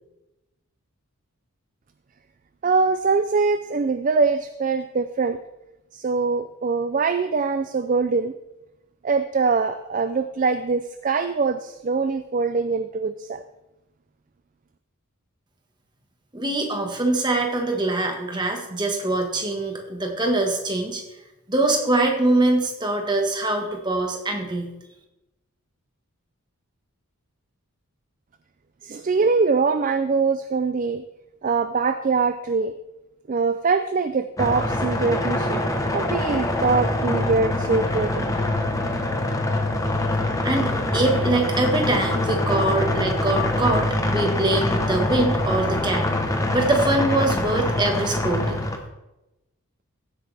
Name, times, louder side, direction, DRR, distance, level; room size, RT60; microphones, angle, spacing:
voice 1, 2.6-5.4 5.9-8.3 9.0-13.4 28.8-31.0 31.4-32.7 33.3-35.6 35.9-38.3, right 4 dB, 35° right, 10 dB, 0.4 m, -23 dB
voice 2, 16.3-21.0 21.5-24.7 40.4-46.1 46.5-48.6, right 2 dB, 20° right, 2 dB, 1.5 m, -23 dB
sound 1, 34.4-48.8, left 1 dB, 15° left, 1.0 m, -24 dB
15.5 x 8.3 x 3.4 m, 0.97 s
head